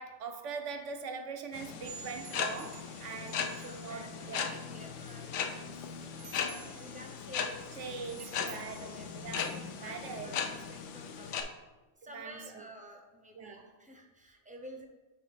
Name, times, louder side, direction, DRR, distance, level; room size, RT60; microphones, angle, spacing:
voice 1, 0.0-4.5 7.8-8.9 9.2-9.4 9.7-10.3 12.1-12.6 13.3-13.7, right 5 dB, 80° right, 5 dB, 1.0 m, -42 dB
sound 1, 1.5-11.4, left 6 dB, 85° left, 0.9 m, -38 dB
sound 2, 1.8-11.4, right 7 dB, 55° right, 0.7 m, -55 dB
voice 2, 3.7-7.9 8.4-9.2 9.8-11.5 12.0-14.9, right 1 dB, 10° right, 1 dB, 0.5 m, -52 dB
7.0 x 3.0 x 4.9 m, 1.2 s
omnidirectional pair, 1.2 m